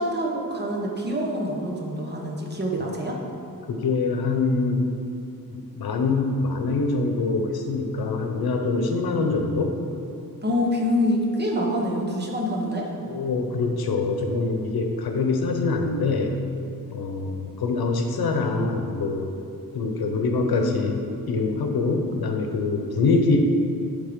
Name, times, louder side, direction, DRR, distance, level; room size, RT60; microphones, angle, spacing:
voice 1, 0.0-3.2 10.4-12.9, equal, 30° right, -1 dB, 0.9 m, -26 dB
voice 2, 3.7-4.9 5.5-9.7 13.0-16.3 16.9-19.3 19.7-23.4, left 3 dB, 80° left, 4 dB, 0.8 m, -24 dB
9.4 x 3.6 x 5.1 m, 2.6 s
wide cardioid pair, 170°, 36 cm